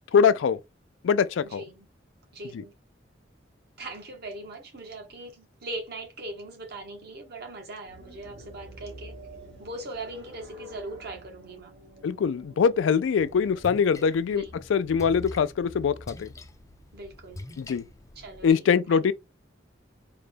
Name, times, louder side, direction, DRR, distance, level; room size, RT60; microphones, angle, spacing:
voice 1, 0.1-0.6 1.0-1.6 2.5-2.6 12.0-14.4 14.7-16.3 17.6-17.8 18.4-19.1, left 6 dB, 85° left, 0.4 m, -23 dB
voice 2, 1.4-1.9 2.3-2.7 3.8-9.2 9.6-11.7 14.3-14.5 16.9-17.5 18.2-19.1, right 2 dB, 60° right, 1.1 m, -40 dB
sound 1, 7.8-14.1, equal, 75° right, 2.0 m, -48 dB
Splash splatter, 13.2-18.5, left 1 dB, 15° left, 0.4 m, -45 dB
3.8 x 2.2 x 3.2 m
head